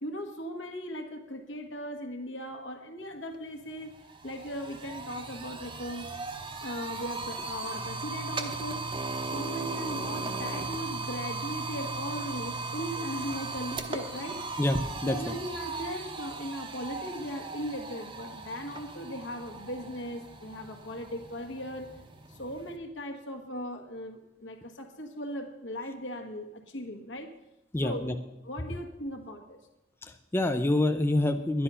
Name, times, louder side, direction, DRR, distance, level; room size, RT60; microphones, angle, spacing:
voice 1, 0.0-4.0 4.2-6.1 6.6-8.9 9.3-14.6 15.0-21.9 22.3-27.3 27.8-28.1 28.4-29.6, equal, 75° left, 3 dB, 1.5 m, -38 dB
sound 1, 3.3-3.4 3.7-22.8, right 3 dB, 25° right, 0.8 m, -37 dB
voice 2, 14.6-15.3 27.7-28.2 30.0-31.6, left 1 dB, 10° left, 7 dB, 0.4 m, -27 dB
11.0 x 10.0 x 5.5 m, 0.94 s
head